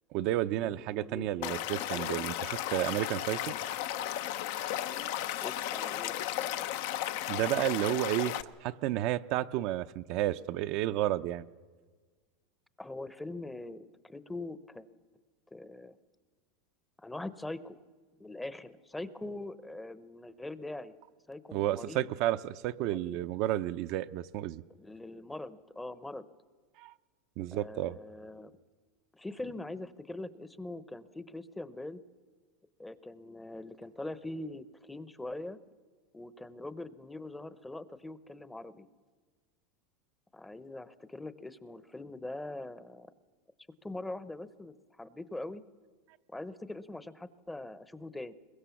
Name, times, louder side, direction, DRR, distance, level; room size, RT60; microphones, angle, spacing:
voice 1, 0.1-3.5 7.3-11.5 21.5-24.6 26.8-26.9 27.4-28.0, right 14 dB, 55° right, 10 dB, 0.6 m, -31 dB
voice 2, 0.6-2.1 5.4-6.7 12.8-14.9 15.5-16.0 17.0-17.8 18.2-21.0 21.3-22.1 22.9-23.2 24.7-26.2 27.5-28.5 29.1-32.0 32.8-35.6 36.1-38.9 40.3-43.1 43.8-45.6 46.3-48.3, left 2 dB, 5° left, 14 dB, 0.8 m, -42 dB
Stream / Liquid, 1.4-8.4, left 12 dB, 70° left, 0.8 m, -34 dB
22.5 x 21.0 x 7.1 m, 1.5 s
supercardioid pair, 130°, 0 cm